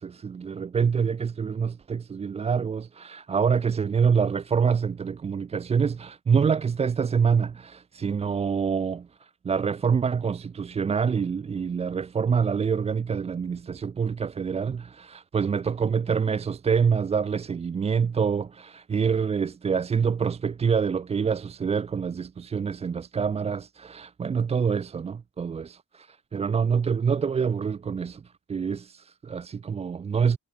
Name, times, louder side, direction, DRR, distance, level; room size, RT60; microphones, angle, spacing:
voice 1, 0.0-9.1 9.4-28.2 28.5-30.4, right 6 dB, 20° right, 0.4 m, -26 dB
cardioid pair, 140°, 35 cm